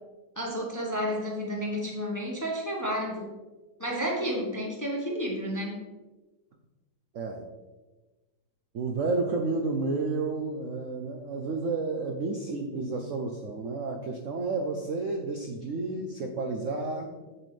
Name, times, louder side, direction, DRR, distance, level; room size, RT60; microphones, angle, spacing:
voice 1, 0.4-3.3 3.8-5.8, equal, 15° left, -1 dB, 0.8 m, -31 dB
voice 2, 7.1-7.5 8.7-17.1, right 3 dB, 70° right, 3 dB, 0.7 m, -31 dB
7.9 x 7.5 x 3.3 m, 1.2 s
omnidirectional pair, 2.2 m